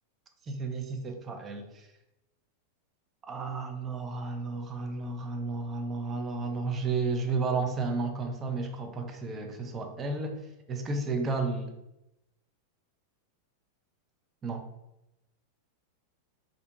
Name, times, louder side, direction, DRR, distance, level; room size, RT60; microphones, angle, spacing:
voice 1, 0.5-1.9 3.3-11.7 14.4-14.6, right 3 dB, 25° right, 5 dB, 0.4 m, -32 dB
2.5 x 2.5 x 2.3 m, 0.91 s
figure-of-eight pair, 90°, 0 cm